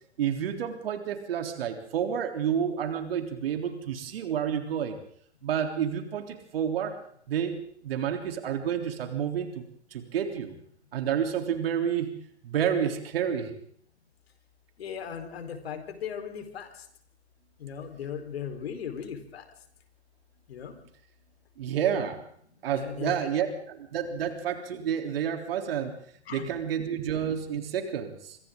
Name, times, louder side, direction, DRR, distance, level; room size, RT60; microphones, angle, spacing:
voice 1, 0.2-5.0 5.4-6.9 7.3-9.6 9.9-10.6 10.9-12.1 12.4-13.5 21.6-22.2 22.6-25.9 26.3-28.4, right 8 dB, 55° right, 5 dB, 3.6 m, -29 dB
voice 2, 14.8-16.7 17.6-19.4 20.5-20.7 22.7-23.1 26.3-26.5, left 8 dB, 60° left, 7 dB, 4.5 m, -37 dB
28.5 x 24.5 x 3.9 m, 0.63 s
figure-of-eight pair, 115°, 34 cm